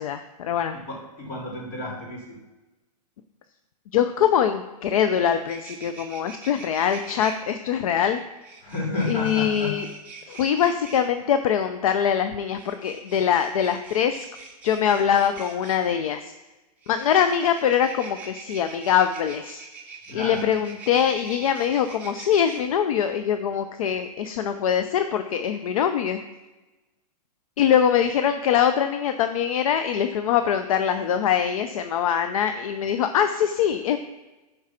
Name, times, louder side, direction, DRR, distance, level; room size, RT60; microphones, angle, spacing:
voice 1, 0.0-0.8 3.9-8.2 9.1-9.9 10.3-14.3 14.6-16.3 16.9-19.6 20.1-26.2 27.6-34.0, left 8 dB, 55° left, 9 dB, 0.6 m, -23 dB
voice 2, 0.7-2.4 8.6-9.8 20.1-20.4, left 2 dB, 30° left, -3 dB, 3.2 m, -31 dB
sound 1, 5.3-7.4 8.4-11.1 12.5-15.9 16.8-22.6, right 4 dB, 10° right, 1.6 m, -43 dB
9.7 x 4.7 x 5.8 m, 1.1 s
hypercardioid pair, 160°, 21 cm